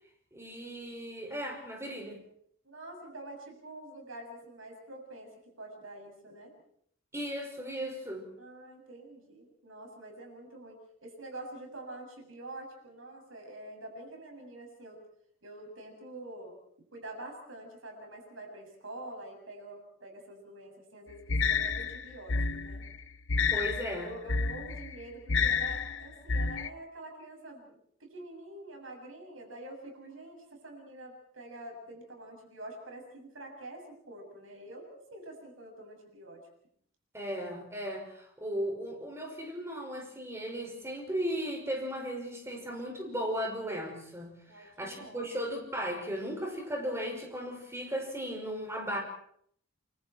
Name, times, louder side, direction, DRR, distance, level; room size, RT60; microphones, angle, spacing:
voice 1, 0.3-2.2 7.1-8.3 23.5-24.1 37.1-49.0, equal, 15° right, 2 dB, 5.7 m, -36 dB
voice 2, 2.6-6.5 8.4-15.0 15.4-16.6 16.9-22.8 23.9-36.4 44.5-45.3, right 1 dB, 75° right, 3 dB, 7.0 m, -46 dB
sound 1, 21.3-26.7, left 5 dB, 65° left, 0.9 m, -30 dB
30.0 x 24.0 x 4.5 m, 0.66 s
head